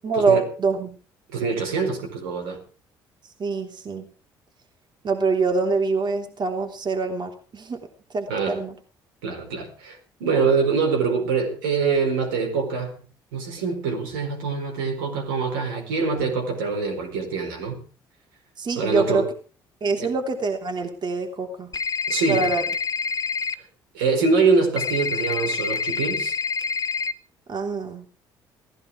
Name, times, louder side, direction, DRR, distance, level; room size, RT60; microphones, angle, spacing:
voice 1, 0.0-0.9 3.4-4.1 5.0-7.9 8.1-8.7 18.6-19.3 19.8-21.7 22.3-22.6 27.5-28.1, right 4 dB, 45° right, 3.3 m, -25 dB
voice 2, 1.3-2.6 8.3-8.6 9.2-13.0 13.3-17.8 18.8-19.3 20.0-20.1 22.1-22.5 23.9-26.4, right 4 dB, 80° right, 4.7 m, -24 dB
sound 1, 21.7-23.5 24.8-27.1, left 5 dB, 35° left, 1.6 m, -27 dB
17.5 x 15.0 x 4.8 m
hypercardioid pair, 50°, 11 cm